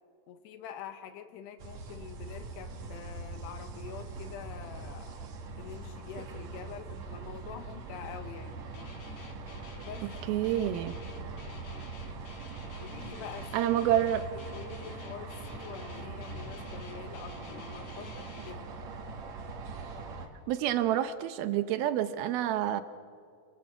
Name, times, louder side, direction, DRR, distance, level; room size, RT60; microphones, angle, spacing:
voice 1, 0.3-8.7 9.8-10.1 12.8-13.8 14.5-18.7, left 8 dB, 80° left, 9 dB, 3.5 m, -46 dB
sound 1, 1.6-20.3, right 3 dB, 50° right, 2.6 m, -42 dB
Guitar, 8.7-18.5, left 5 dB, 55° left, 2.3 m, -50 dB
voice 2, 10.3-11.0 13.5-14.3 20.5-22.8, right 12 dB, 75° right, 11 dB, 2.5 m, -28 dB
27.5 x 23.5 x 7.9 m, 2.3 s
omnidirectional pair, 4.8 m